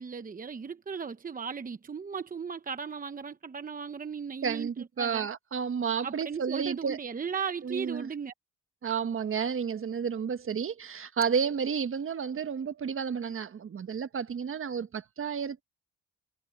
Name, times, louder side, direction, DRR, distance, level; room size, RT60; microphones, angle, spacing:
voice 1, 0.0-5.3 6.0-8.3, right 6 dB, 30° right, 0.9 m, -37 dB
voice 2, 4.4-7.0 7.6-8.1 8.8-15.6, right 6 dB, 45° right, 1.5 m, -31 dB
cardioid pair, 90°, 30 cm